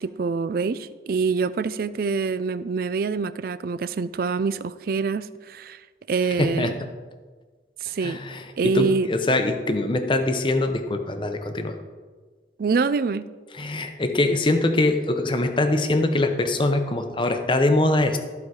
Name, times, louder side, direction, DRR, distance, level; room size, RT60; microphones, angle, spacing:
voice 1, 0.0-5.8 6.1-6.7 7.8-8.2 8.6-9.1 12.6-13.3, right 4 dB, 55° right, 15 dB, 0.4 m, -25 dB
voice 2, 6.4-6.7 8.0-11.8 13.6-18.2, left 2 dB, 30° left, 6 dB, 0.7 m, -23 dB
14.0 x 4.7 x 4.8 m, 1.4 s
head